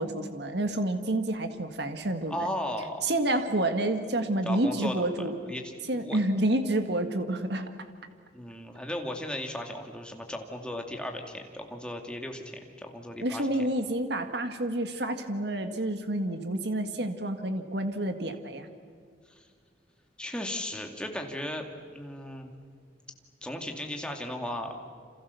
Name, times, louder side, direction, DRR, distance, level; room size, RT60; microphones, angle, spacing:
voice 1, 0.0-2.3 3.0-5.4 5.9-7.7 13.2-18.7, right 1 dB, 60° right, 7 dB, 1.8 m, -29 dB
voice 2, 2.3-3.0 4.5-5.7 6.0-6.2 8.3-13.5 19.3-19.5 20.2-22.5 23.4-24.8, left 1 dB, 5° left, 3 dB, 2.4 m, -36 dB
29.0 x 27.0 x 7.0 m, 2.1 s
head